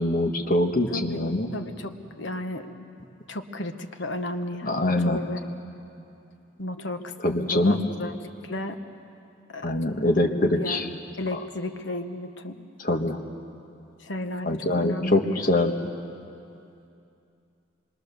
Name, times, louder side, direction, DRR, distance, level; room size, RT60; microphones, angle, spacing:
voice 1, 0.0-1.5 4.6-5.2 7.2-7.8 9.6-10.9 12.8-13.2 14.4-15.7, left 1 dB, 45° left, 3 dB, 1.4 m, -23 dB
voice 2, 0.9-1.3 1.5-2.7 3.3-5.5 6.6-8.8 9.5-9.8 10.6-10.9 11.2-12.6 14.0-15.6, left 1 dB, 65° left, 7 dB, 1.1 m, -34 dB
26.0 x 22.0 x 6.8 m, 2.7 s
head